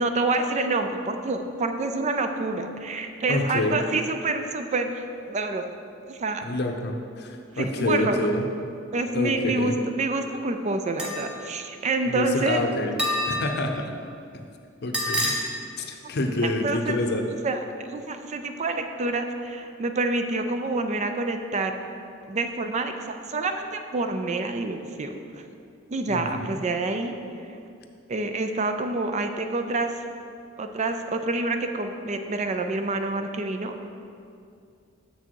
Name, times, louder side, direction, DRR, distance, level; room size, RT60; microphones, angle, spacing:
voice 1, 0.0-5.7 6.1-6.4 7.6-8.2 8.9-12.6 16.6-17.0 17.4-21.7 22.3-25.2 25.9-27.2 28.1-30.0 30.6-33.9, right 2 dB, 35° right, 7 dB, 0.4 m, -27 dB
voice 2, 3.3-3.8 6.4-8.4 9.1-9.8 12.1-12.9 13.2-13.9 14.8-15.3 15.8-17.3 26.1-26.6, left 1 dB, 55° left, 4 dB, 0.7 m, -27 dB
sound 1, 11.0-11.3 13.0-13.6 14.9-15.4, left 1 dB, 5° right, 1.0 m, -26 dB
6.8 x 6.2 x 4.6 m, 2.4 s
head